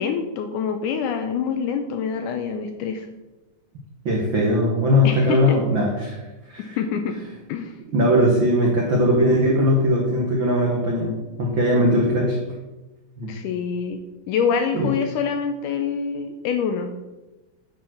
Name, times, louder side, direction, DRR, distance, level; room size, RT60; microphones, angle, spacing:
voice 1, 0.0-3.1 5.0-5.6 6.8-7.2 7.5-7.7 13.3-14.0 14.3-16.9, left 6 dB, 80° left, 6 dB, 1.9 m, -25 dB
voice 2, 4.0-6.2 6.5-6.8 7.9-11.1 11.4-12.4 13.2-13.3 14.7-14.9, equal, 85° right, -1 dB, 1.0 m, -19 dB
9.4 x 4.5 x 5.8 m, 1.1 s
omnidirectional pair, 4.1 m